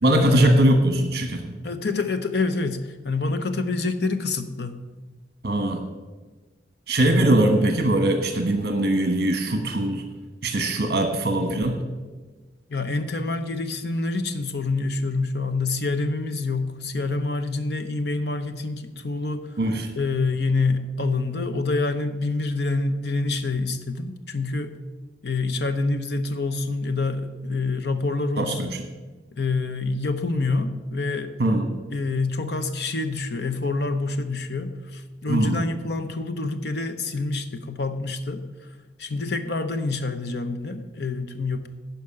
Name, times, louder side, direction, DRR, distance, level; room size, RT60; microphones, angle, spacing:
voice 1, 0.0-1.6 5.4-5.8 6.9-10.0 10.4-11.8 19.6-19.9 28.4-28.9 31.4-31.7 35.3-35.6, right 1 dB, 60° right, 5 dB, 1.2 m, -21 dB
voice 2, 1.6-4.7 12.7-19.5 20.0-24.7 25.2-28.7 29.4-31.3 31.9-38.4 39.0-41.7, left 3 dB, 65° left, 9 dB, 0.9 m, -27 dB
11.5 x 5.2 x 8.5 m, 1.3 s
head